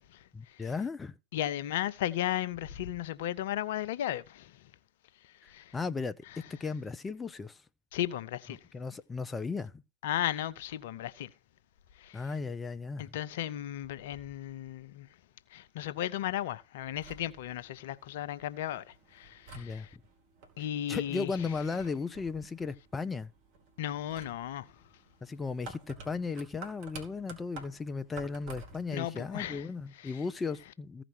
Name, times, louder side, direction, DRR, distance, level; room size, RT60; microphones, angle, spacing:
voice 1, 0.3-1.1 5.4-6.2 6.6-7.6 8.7-9.7 12.1-13.1 19.5-19.9 20.9-23.3 25.2-31.0, left 4 dB, 15° left, 0.6 m, -36 dB
voice 2, 1.3-4.5 5.5-5.7 7.9-8.6 10.0-11.3 12.0-12.2 13.0-15.1 15.5-18.8 19.1-19.9 20.6-21.3 23.8-24.7 28.9-29.7 30.0-30.2, left 12 dB, 55° left, 0.7 m, -35 dB
sound 1, 16.8-29.0, right 3 dB, 45° right, 2.9 m, -52 dB
15.0 x 5.0 x 6.1 m
figure-of-eight pair, 90°, 0 cm